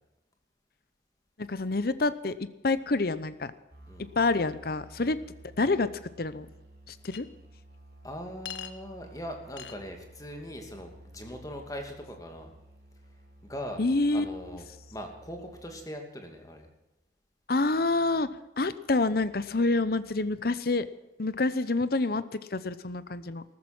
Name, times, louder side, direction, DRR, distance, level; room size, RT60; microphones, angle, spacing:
voice 1, 1.4-3.5 4.2-5.2 5.6-5.9 6.2-6.5 6.9-7.3 13.8-14.3 17.5-18.3 18.6-20.9 21.2-23.4, left 3 dB, 55° left, 14 dB, 0.8 m, -27 dB
sound 1, 3.7-15.9, right 1 dB, 60° right, 3.9 m, -53 dB
Chink clink, 7.1-7.2 8.5-8.7 9.6-9.8, left 10 dB, 80° left, 1.2 m, -40 dB
voice 2, 8.0-12.5 13.4-13.8 14.1-14.6 14.9-16.7, equal, 20° left, 4 dB, 2.5 m, -40 dB
14.5 x 13.5 x 6.0 m, 0.97 s
head